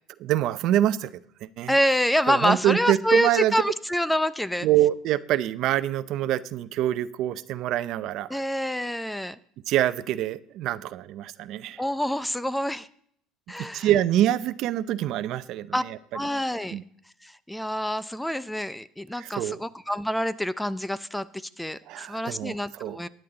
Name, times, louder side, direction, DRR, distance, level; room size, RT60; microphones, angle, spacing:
voice 1, 0.2-1.1 1.4-1.7 2.3-3.6 4.6-8.4 9.7-11.8 13.6-16.0 16.7-16.8 19.2-19.6 21.9-23.0, right 13 dB, 60° right, 0.6 m, -25 dB
voice 2, 1.7-4.7 8.3-9.4 11.8-12.9 13.5-13.9 15.7-15.8 16.1-16.8 17.2-23.1, equal, 5° left, 0.5 m, -27 dB
16.0 x 10.5 x 3.9 m
supercardioid pair, 105°, 0 cm